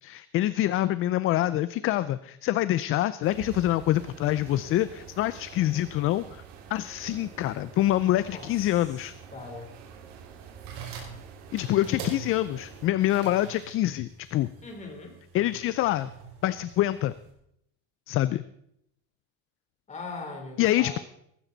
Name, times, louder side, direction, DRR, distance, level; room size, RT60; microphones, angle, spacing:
voice 1, 0.0-6.4 6.7-9.1 11.5-14.5 15.3-16.1 16.4-17.1 18.1-18.4 20.6-21.0, left 14 dB, 40° left, 15 dB, 0.5 m, -26 dB
sound 1, 3.2-12.9, right 7 dB, 90° right, 2.7 m, -47 dB
voice 2, 9.3-9.8 14.6-15.2 19.9-21.0, left 3 dB, 20° left, 2 dB, 3.5 m, -40 dB
sound 2, 10.5-17.3, right 6 dB, 65° right, 5.2 m, -44 dB
17.0 x 15.5 x 4.0 m, 0.74 s
cardioid pair, 155°, 34 cm